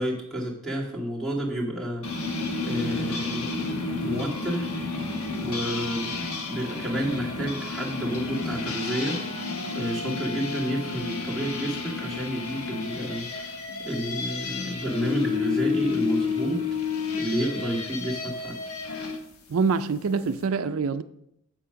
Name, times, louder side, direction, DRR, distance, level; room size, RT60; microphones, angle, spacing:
voice 1, 0.0-2.3 2.6-4.7 5.3-6.2 6.5-9.2 9.7-16.6 17.2-18.6, equal, ahead, 1.9 m, -30 dB
sound 1, 2.0-19.2, left 4 dB, 85° left, 1.3 m, -31 dB
voice 2, 19.5-21.0, right 5 dB, 70° right, 0.4 m, -25 dB
7.7 x 7.2 x 5.1 m
head